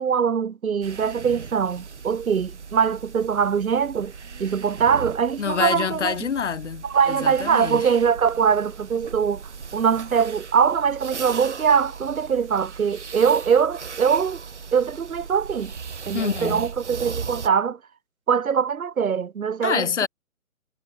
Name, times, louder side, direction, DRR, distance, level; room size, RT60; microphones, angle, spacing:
voice 1, 0.0-4.1 4.4-6.2 6.8-14.4 14.7-15.7 16.1-17.8 18.3-19.9, right 7 dB, 85° right, 0.6 m, -22 dB
sound 1, 0.8-17.5, right 5 dB, 55° right, 3.7 m, -38 dB
voice 2, 5.4-8.0 16.1-16.7 19.6-20.1, left 7 dB, 60° left, 0.7 m, -27 dB
figure-of-eight pair, 140°, 41 cm